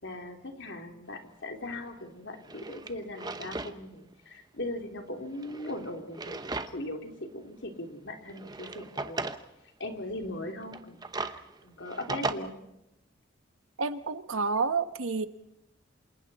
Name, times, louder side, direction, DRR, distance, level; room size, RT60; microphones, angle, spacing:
voice 1, 0.0-9.3 9.8-12.5, left 1 dB, 60° left, 3 dB, 3.2 m, -39 dB
Drawer open or close, 1.7-1.8 2.3-3.8 4.1-4.2 5.3-7.0 7.4-7.5 8.3-9.4 10.6-12.3, right 3 dB, 20° right, 0.9 m, -37 dB
voice 2, 13.8-15.3, right 4 dB, 85° right, 11 dB, 1.2 m, -29 dB
28.0 x 27.5 x 4.3 m, 0.89 s
head